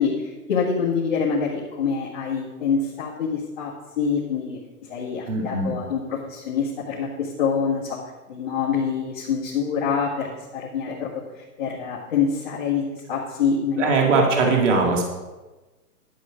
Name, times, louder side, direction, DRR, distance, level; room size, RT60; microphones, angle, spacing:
voice 1, 0.0-4.6 4.9-8.0 8.3-13.9, left 6 dB, 30° left, -6 dB, 1.8 m, -26 dB
voice 2, 5.3-5.7 13.8-15.1, right 3 dB, 50° right, 1 dB, 2.1 m, -20 dB
11.5 x 8.2 x 5.0 m, 1.2 s
hypercardioid pair, 170°, 46 cm